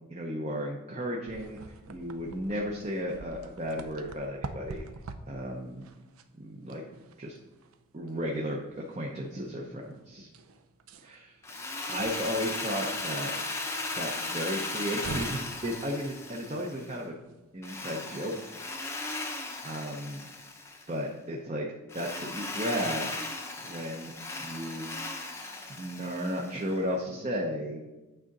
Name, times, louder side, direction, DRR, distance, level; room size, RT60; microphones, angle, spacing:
voice 1, 0.1-4.9 5.3-5.9 6.3-6.8 7.2-7.4 7.9-8.6 8.9-10.3 11.0-11.4 11.9-13.3 14.0-17.2 17.5-18.4 19.6-20.2 20.9-21.7 21.9-23.1 23.6-24.1 24.4-24.9 25.7-27.9, equal, 30° right, 0 dB, 0.7 m, -34 dB
sound 1, 1.3-18.6, right 3 dB, 75° right, 0.5 m, -47 dB
Drill, 11.4-17.0 17.6-20.9 21.9-26.7, left 2 dB, 10° left, 0.6 m, -37 dB
9.1 x 3.7 x 5.3 m, 1.1 s
head